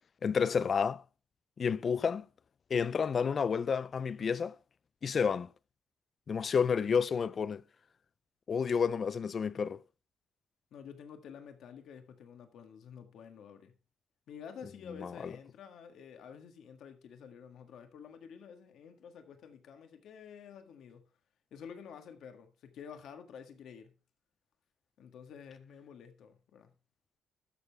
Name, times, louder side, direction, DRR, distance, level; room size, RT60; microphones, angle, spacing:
voice 1, 0.2-1.0 1.6-2.3 2.7-4.5 5.0-5.5 6.3-7.6 8.5-9.8 15.0-15.1, left 6 dB, 35° left, 0.3 m, -30 dB
voice 2, 10.7-13.8 14.3-21.1 21.5-24.0 25.0-26.7, left 7 dB, 65° left, 1.6 m, -50 dB
12.5 x 7.0 x 3.5 m
cardioid pair, 155°, 0 cm